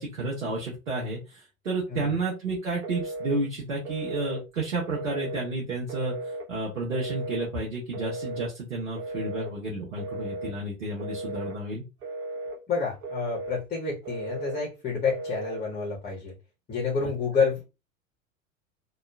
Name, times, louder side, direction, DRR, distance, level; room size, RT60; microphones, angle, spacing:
voice 1, 0.0-6.1 6.5-11.8, right 2 dB, 80° right, -4 dB, 1.0 m, -31 dB
Telephone, 2.8-3.4 3.9-4.4 4.9-5.4 5.9-6.5 6.9-7.5 7.9-8.5 9.0-9.5 10.0-10.5 11.0-11.6 12.0-12.6 13.0-13.6 14.1-14.6 15.1-15.6, right 2 dB, 35° right, 1.0 m, -35 dB
voice 2, 12.7-16.3 16.7-17.7, left 5 dB, 20° left, -2 dB, 0.9 m, -29 dB
2.9 x 2.3 x 2.3 m, 0.27 s
figure-of-eight pair, 85°, 40 cm